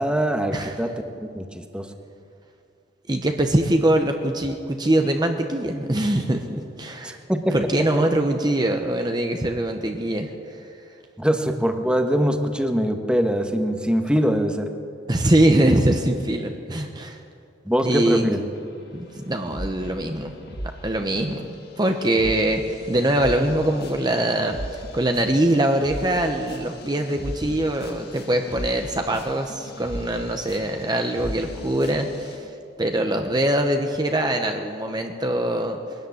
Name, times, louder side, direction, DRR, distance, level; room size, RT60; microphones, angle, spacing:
voice 1, 0.0-1.9 7.0-8.1 11.2-14.7 17.6-18.5, equal, 5° right, 5 dB, 1.3 m, -23 dB
voice 2, 3.1-7.2 7.5-10.3 15.1-17.2 17.8-18.2 18.9-20.3 20.8-32.5 32.8-35.8, right 1 dB, 25° right, 4 dB, 1.1 m, -23 dB
sound 1, 18.5-20.2 20.5-32.4, equal, 60° left, 2.8 m, -38 dB
21.5 x 13.5 x 9.6 m, 2.4 s
head